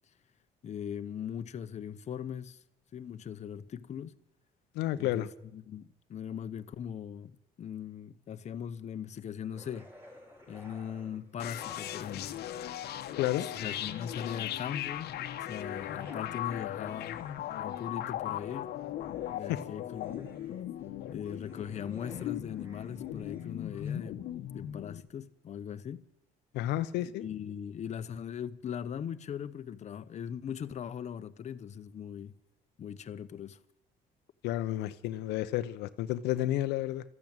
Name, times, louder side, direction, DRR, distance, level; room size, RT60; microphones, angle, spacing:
voice 1, 0.6-2.6 2.9-4.2 5.0-9.9 10.5-12.4 13.6-17.2 17.6-18.7 19.3-20.3 21.1-24.2 24.5-26.1 27.0-32.3 32.8-33.6, left 8 dB, 45° left, 0.9 m, -40 dB
voice 2, 4.7-5.3 13.2-13.5 19.5-19.6 26.5-27.2 34.4-37.0, left 14 dB, 90° left, 0.7 m, -31 dB
sound 1, 9.5-12.2 12.5-14.8 15.4-24.0, left 1 dB, 15° right, 5.1 m, -55 dB
sound 2, 11.4-25.0, left 12 dB, 70° left, 1.1 m, -38 dB
13.5 x 12.0 x 8.9 m
cardioid pair, 110°, 17 cm